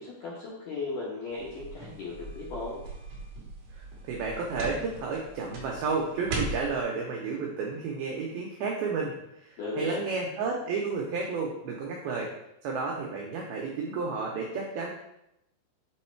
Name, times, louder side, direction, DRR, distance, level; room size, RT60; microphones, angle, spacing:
voice 1, 0.0-2.8 9.6-10.0, left 3 dB, 75° left, -6 dB, 1.9 m, -36 dB
sound 1, 1.3-6.8, right 3 dB, 65° right, 2.1 m, -39 dB
voice 2, 3.7-12.3 12.6-14.9, right 4 dB, 90° right, -1 dB, 2.1 m, -32 dB
7.4 x 3.1 x 4.4 m, 0.81 s
omnidirectional pair, 5.3 m